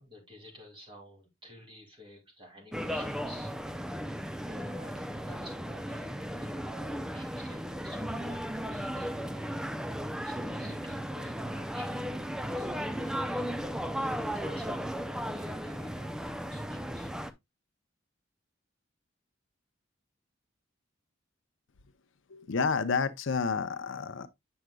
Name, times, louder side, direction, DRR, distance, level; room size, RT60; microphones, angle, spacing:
voice 1, 0.0-9.5 10.2-17.1, left 1 dB, 25° right, 2.6 m, -52 dB
sound 1, 2.7-17.3, equal, 5° right, 0.4 m, -35 dB
voice 2, 22.3-24.3, left 5 dB, 70° left, 0.6 m, -30 dB
7.9 x 6.1 x 2.2 m
head